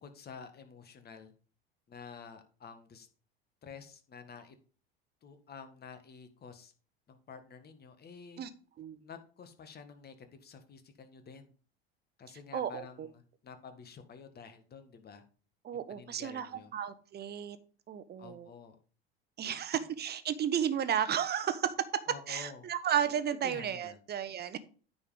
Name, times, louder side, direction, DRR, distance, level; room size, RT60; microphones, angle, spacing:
voice 1, 0.0-1.3 1.9-3.1 3.6-4.6 5.2-6.7 7.1-8.4 9.0-11.5 12.2-15.2 15.7-16.7 18.2-18.8 22.1-22.7 23.0-24.0, left 6 dB, 30° left, 8 dB, 1.8 m, -50 dB
voice 2, 12.5-13.1 15.6-17.6 17.9-18.5 19.4-21.7 22.3-24.6, right 9 dB, 35° right, 13 dB, 1.1 m, -33 dB
9.4 x 5.5 x 5.0 m, 0.39 s
hypercardioid pair, 75°, 30 cm